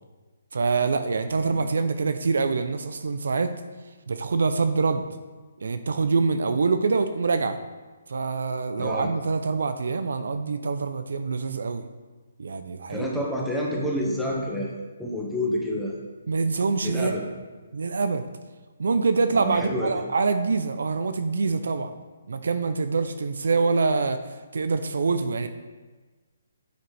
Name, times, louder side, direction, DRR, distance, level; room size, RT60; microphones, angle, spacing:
voice 1, 0.5-3.5 4.1-5.1 5.6-7.6 8.1-11.9 12.4-13.1 16.3-17.1 17.7-18.3 18.8-21.9 22.3-24.2 24.5-25.5, right 4 dB, 70° right, 9 dB, 0.5 m, -25 dB
voice 2, 1.4-1.7 8.8-9.1 12.9-16.0 16.8-17.2 19.3-20.0, equal, ahead, -4 dB, 1.7 m, -29 dB
9.4 x 6.5 x 3.4 m, 1.3 s
figure-of-eight pair, 145°, 0 cm